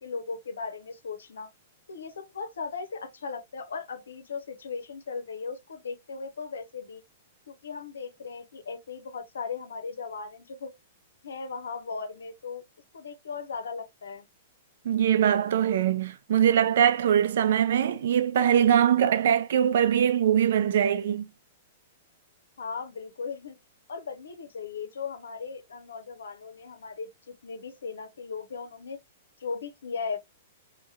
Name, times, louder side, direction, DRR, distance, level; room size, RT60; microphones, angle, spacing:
voice 1, 0.0-1.5 1.9-7.0 7.5-10.7 11.2-12.6 12.9-14.3 22.6-23.6 23.9-29.0 29.4-30.2, left 5 dB, 85° left, 0.7 m, -37 dB
voice 2, 14.9-21.3, right 9 dB, 70° right, 0.4 m, -22 dB
2.8 x 2.2 x 2.3 m
hypercardioid pair, 130°, 0 cm